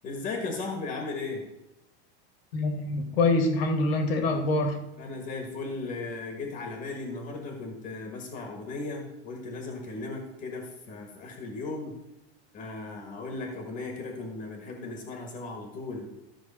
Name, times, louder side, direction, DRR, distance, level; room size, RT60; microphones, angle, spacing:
voice 1, 0.0-1.4 5.0-12.0 12.5-16.1, left 3 dB, 25° left, 3 dB, 1.5 m, -36 dB
voice 2, 2.5-4.8, left 2 dB, 70° left, 6 dB, 2.1 m, -25 dB
13.5 x 6.2 x 4.2 m, 0.93 s
supercardioid pair, 170°, 31 cm